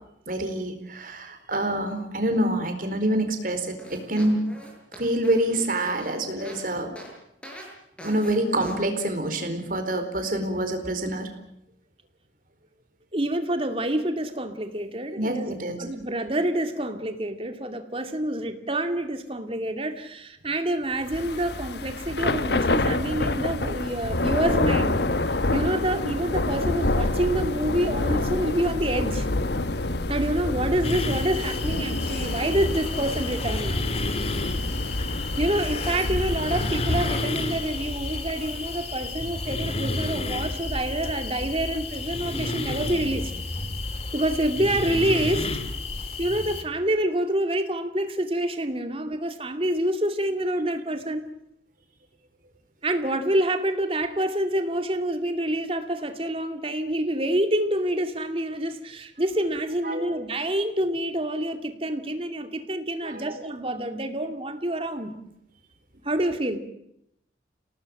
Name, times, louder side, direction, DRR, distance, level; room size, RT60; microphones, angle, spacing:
voice 1, 0.3-4.4 5.0-6.9 8.0-11.3 15.2-15.8 59.8-60.0 63.0-63.2, right 1 dB, 50° right, 7 dB, 4.5 m, -26 dB
sound 1, 3.8-6.6 7.0-7.1 7.4-7.7 8.0-8.3 8.6-8.8, equal, 5° left, 6.5 m, -42 dB
voice 2, 13.1-15.5 15.8-25.0 25.5-29.3 30.1-33.9 35.4-43.3 44.1-45.5 46.2-51.3 52.8-65.1 66.0-66.6, right 1 dB, 30° right, 7 dB, 2.5 m, -27 dB
Thunder / Rain, 21.1-37.4, left 2 dB, 65° left, 1.2 m, -27 dB
sound 2, 30.8-46.6, left 2 dB, 35° left, 2.2 m, -31 dB
28.5 x 18.5 x 7.8 m, 0.78 s
head